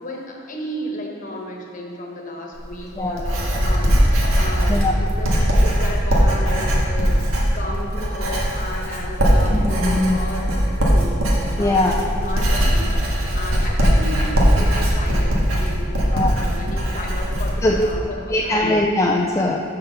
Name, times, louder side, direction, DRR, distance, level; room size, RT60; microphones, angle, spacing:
voice 1, 0.0-5.3 5.6-7.2 7.5-18.6, left 1 dB, 35° left, 0 dB, 1.2 m, -33 dB
Writing, 2.5-17.9, equal, 75° right, 1.5 m, -20 dB
voice 2, 9.5-10.2 11.6-12.0 16.1-16.4 17.6-17.9 18.3-19.6, left 1 dB, 15° left, -1 dB, 0.4 m, -20 dB
6.5 x 5.9 x 6.8 m, 2.7 s
head